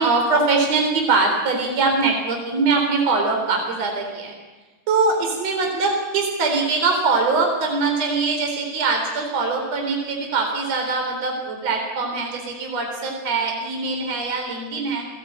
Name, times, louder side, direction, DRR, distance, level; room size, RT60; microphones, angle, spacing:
voice 1, 0.0-4.4 4.9-15.0, right 3 dB, 50° right, 2 dB, 5.0 m, -22 dB
29.0 x 20.0 x 8.9 m, 1.2 s
omnidirectional pair, 3.8 m